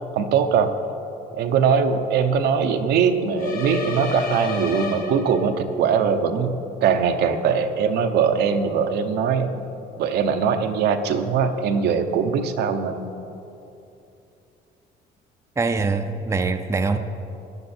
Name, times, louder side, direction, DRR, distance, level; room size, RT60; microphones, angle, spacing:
voice 1, 0.1-0.7 1.3-9.6 10.0-13.1, right 6 dB, 75° right, 6 dB, 0.9 m, -21 dB
sound 1, 3.4-5.7, left 3 dB, 60° left, 2.0 m, -30 dB
voice 2, 15.6-17.0, right 4 dB, 15° right, 7 dB, 0.6 m, -23 dB
13.5 x 10.0 x 4.4 m, 2.8 s
cardioid pair, 110°, 17 cm